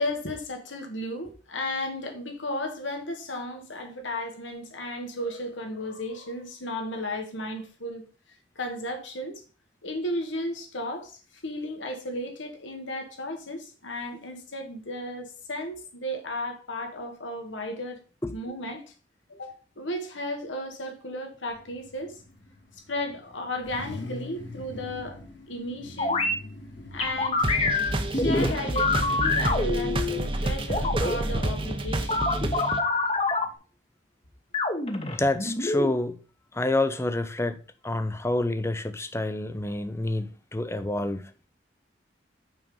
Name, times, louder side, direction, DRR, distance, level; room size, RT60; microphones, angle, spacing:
voice 1, 0.0-8.0 8.6-9.4 9.8-18.0 18.3-18.8 19.3-22.2 22.9-25.2 25.5-26.2 26.9-27.5 28.1-32.3, left 1 dB, 85° left, 1.9 m, -34 dB
Car / Idling / Accelerating revving vroom, 21.5-33.6, left 2 dB, 65° left, 2.0 m, -43 dB
sound 1, 26.0-26.3 27.0-30.2 30.7-31.2 32.1-33.4 34.5-35.9, left 3 dB, 30° left, 1.1 m, -26 dB
sound 2, 27.4-32.8, right 1 dB, 30° right, 0.8 m, -29 dB
voice 2, 35.0-36.2 36.5-41.2, left 2 dB, 15° left, 0.6 m, -28 dB
6.0 x 5.3 x 5.3 m
head